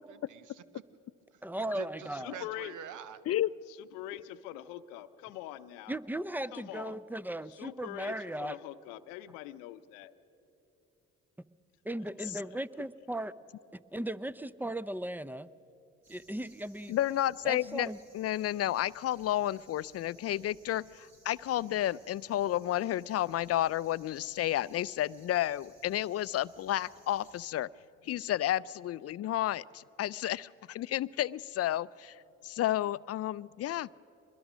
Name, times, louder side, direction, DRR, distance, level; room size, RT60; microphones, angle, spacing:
voice 1, 0.1-0.8 1.3-1.4 1.7-3.2, right 7 dB, 70° right, 14 dB, 1.0 m, -46 dB
voice 2, 1.4-2.4 5.9-8.6 11.8-13.3 13.7-15.5 16.1-17.0 17.4-18.0, right 1 dB, 5° right, 17 dB, 0.5 m, -37 dB
voice 3, 2.1-2.7 3.7-6.0 6.5-7.0 7.5-10.1 12.2-12.6, left 14 dB, 85° left, 12 dB, 0.7 m, -44 dB
sound 1, 16.0-27.5, right 2 dB, 50° right, 4.5 m, -62 dB
voice 4, 16.9-17.9 18.1-27.7 28.0-32.2 32.4-33.9, left 13 dB, 50° left, 19 dB, 0.4 m, -31 dB
23.5 x 21.5 x 6.2 m, 2.8 s
supercardioid pair, 65°, 32 cm